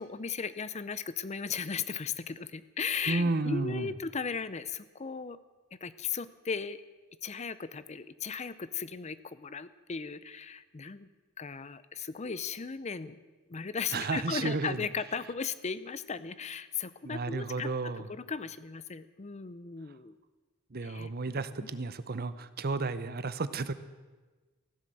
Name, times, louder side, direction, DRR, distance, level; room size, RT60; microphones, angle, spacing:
voice 1, 0.0-5.4 5.7-6.8 7.2-11.1 11.4-13.2 13.5-17.7 18.0-20.2 20.8-21.1, left 5 dB, 30° left, 15 dB, 0.5 m, -36 dB
voice 2, 3.1-3.9 13.9-14.9 17.0-18.1 20.7-23.7, right 3 dB, 45° right, 13 dB, 0.8 m, -32 dB
15.5 x 12.0 x 7.6 m, 1.3 s
head